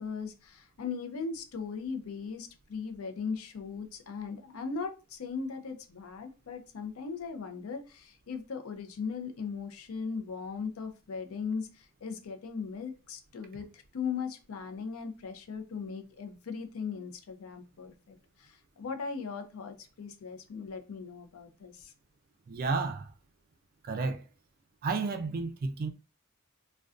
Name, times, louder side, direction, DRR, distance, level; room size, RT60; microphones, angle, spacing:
voice 1, 0.0-21.9, left 5 dB, 85° left, 0.5 m, -38 dB
voice 2, 22.5-23.0 23.9-24.2 24.8-25.9, right 4 dB, 45° right, 0.3 m, -31 dB
2.4 x 2.2 x 2.4 m
head